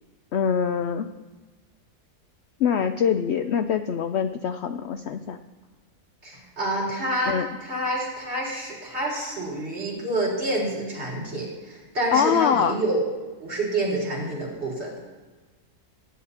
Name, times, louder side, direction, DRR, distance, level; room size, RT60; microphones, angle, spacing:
voice 1, 0.3-1.1 2.6-5.4 7.3-7.5 12.1-12.8, left 7 dB, 75° left, 8 dB, 0.6 m, -24 dB
voice 2, 6.2-7.3 7.6-13.0 13.4-14.9, right 1 dB, 40° right, -5 dB, 4.4 m, -28 dB
21.0 x 10.5 x 2.9 m, 1.3 s
omnidirectional pair, 1.7 m